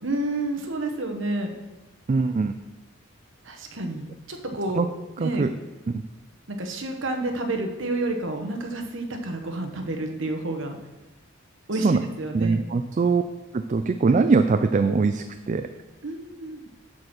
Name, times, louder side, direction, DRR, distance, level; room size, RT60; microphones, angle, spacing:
voice 1, 0.0-1.5 3.4-4.8 5.2-5.4 6.5-10.8 11.7-12.6 16.0-16.7, right 2 dB, 65° right, 4 dB, 1.1 m, -29 dB
voice 2, 2.1-2.6 4.8-4.9 5.2-5.5 5.9-6.0 11.7-12.0 12.3-13.2 13.5-15.7, right 4 dB, 35° right, 8 dB, 0.3 m, -22 dB
8.9 x 4.3 x 6.5 m, 1.1 s
head